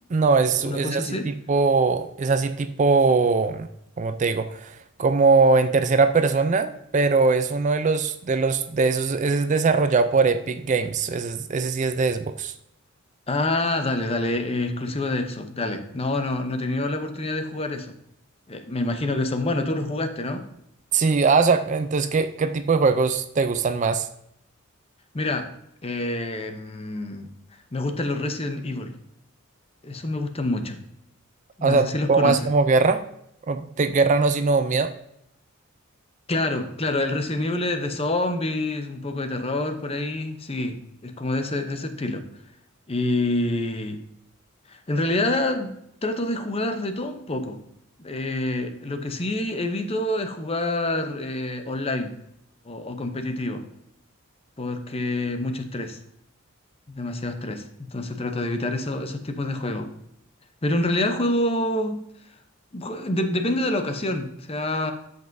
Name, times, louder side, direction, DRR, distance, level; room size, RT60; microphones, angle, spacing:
voice 1, 0.1-3.7 4.0-12.5 20.9-24.1 31.6-33.0 33.5-34.9, right 4 dB, 35° right, 10 dB, 0.4 m, -21 dB
voice 2, 0.6-1.3 13.3-17.9 18.5-20.4 25.1-25.5 25.8-27.3 27.7-28.9 29.8-30.8 31.6-32.4 36.3-42.3 42.9-44.0 44.7-45.7 46.0-47.6 48.0-52.1 52.7-53.6 54.6-56.0 56.9-57.6 57.9-59.9 60.6-62.0 62.7-64.9, left 2 dB, 25° left, 7 dB, 0.7 m, -27 dB
13.5 x 5.3 x 2.6 m, 0.76 s
head